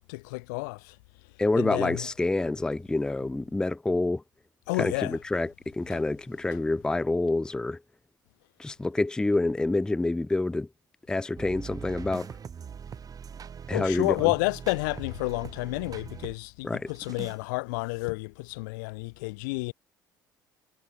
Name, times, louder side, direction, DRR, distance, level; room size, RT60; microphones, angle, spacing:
voice 1, 0.1-1.0 1.6-2.1 4.7-5.2 5.9-6.0 13.7-19.7, left 27 dB, 70° left, 0.6 m, -30 dB
voice 2, 1.4-4.2 4.8-7.8 8.6-10.7 11.1-12.3 13.7-14.3 16.6-16.9, left 2 dB, 5° left, 0.4 m, -27 dB
sound 1, 11.4-16.4 16.9-17.4, right 7 dB, 35° right, 1.6 m, -42 dB
hypercardioid pair, 60°, 10 cm